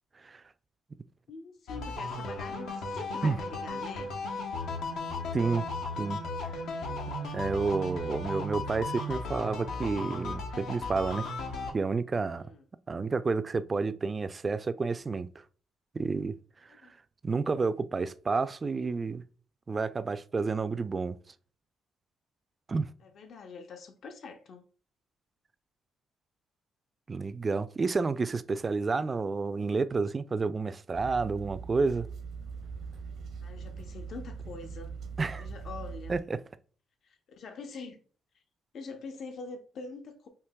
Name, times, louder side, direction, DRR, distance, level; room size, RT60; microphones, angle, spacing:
voice 1, 1.3-4.1 12.4-12.6 16.7-16.9 23.0-24.6 33.4-34.9 35.4-36.2 37.0-38.0 38.3-38.4 38.7-40.3, left 4 dB, 60° left, 0.6 m, -44 dB
sound 1, 1.7-11.7, left 2 dB, 85° left, 0.9 m, -35 dB
voice 2, 5.3-5.7 6.0-6.2 7.3-11.3 11.7-12.5 12.9-15.3 15.9-16.3 17.2-19.2 19.7-21.2 22.7-22.9 27.1-32.1 35.2-35.5 36.1-36.4, right 4 dB, 30° right, 0.3 m, -30 dB
sound 2, 30.9-36.2, right 5 dB, 70° right, 0.7 m, -41 dB
5.8 x 2.8 x 2.3 m
cardioid pair, 90°, 0 cm